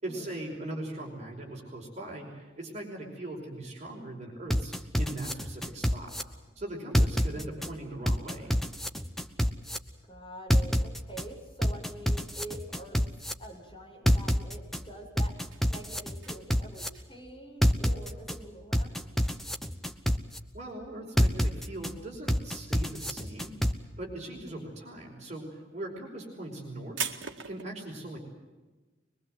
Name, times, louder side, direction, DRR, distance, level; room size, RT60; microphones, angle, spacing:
voice 1, 0.0-6.1 6.6-8.5 20.5-23.6 24.0-27.2 27.4-28.2, right 1 dB, 35° right, 0 dB, 5.3 m, -40 dB
sound 1, 4.5-6.2 6.9-7.7 8.1-9.8 10.5-11.2 11.6-13.3 14.1-14.8 15.2-16.9 17.6-18.3 18.7-20.4 21.2-21.9 22.3-23.7, equal, ahead, 1.0 m, -26 dB
voice 2, 10.1-19.0 24.3-24.8, right 1 dB, 25° left, -2 dB, 7.6 m, -46 dB
sound 2, 14.7-22.5 22.8-23.5 23.7-27.6, right 7 dB, 70° right, 1.9 m, -43 dB
23.0 x 23.0 x 7.9 m, 1.2 s
head